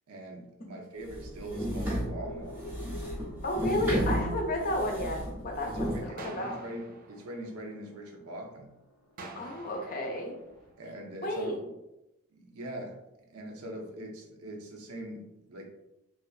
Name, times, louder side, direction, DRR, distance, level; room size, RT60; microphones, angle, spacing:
voice 1, 0.1-2.7 5.6-8.7 10.8-11.6 12.3-13.0 13.3-15.7, right 1 dB, 85° right, 2 dB, 0.6 m, -42 dB
sound 1, 1.0-6.1, equal, 10° right, 0.6 m, -33 dB
sound 2, 1.8-10.7, left 1 dB, 90° left, 0.5 m, -50 dB
voice 2, 3.4-6.6 9.3-10.3 11.2-11.6, left 1 dB, 40° left, 1 dB, 0.5 m, -32 dB
sound 3, 6.2-8.2 9.2-11.2, right 3 dB, 40° right, 0.3 m, -49 dB
3.0 x 2.4 x 2.4 m, 0.89 s
head